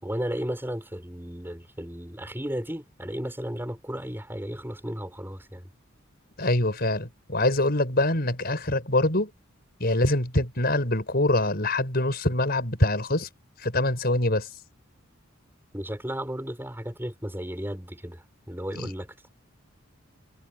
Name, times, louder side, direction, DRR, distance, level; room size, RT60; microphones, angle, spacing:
voice 1, 0.0-5.7 15.7-19.3, equal, 10° right, 5.8 m, -34 dB
voice 2, 6.4-9.3 9.8-13.3 13.6-14.5 18.7-18.9, left 1 dB, 50° left, 5.8 m, -24 dB
head